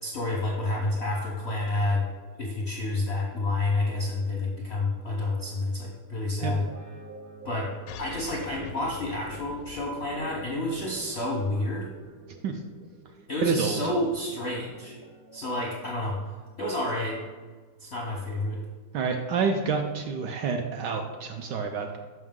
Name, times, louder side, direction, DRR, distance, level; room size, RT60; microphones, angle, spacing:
voice 1, 0.0-2.1 2.3-6.7 7.4-7.7 8.0-11.9 13.3-15.0 15.3-16.2 16.6-17.2 17.8-18.6, left 2 dB, 60° left, -3 dB, 0.7 m, -29 dB
Guitar, 6.2-13.4 13.8-17.5, right 3 dB, 55° right, 1.3 m, -49 dB
sound 1, 7.9-12.9, left 6 dB, 90° left, 1.5 m, -44 dB
voice 2, 13.4-13.8 18.9-22.0, right 5 dB, 75° right, 4 dB, 1.0 m, -28 dB
6.2 x 5.7 x 3.6 m, 1.5 s
omnidirectional pair, 2.2 m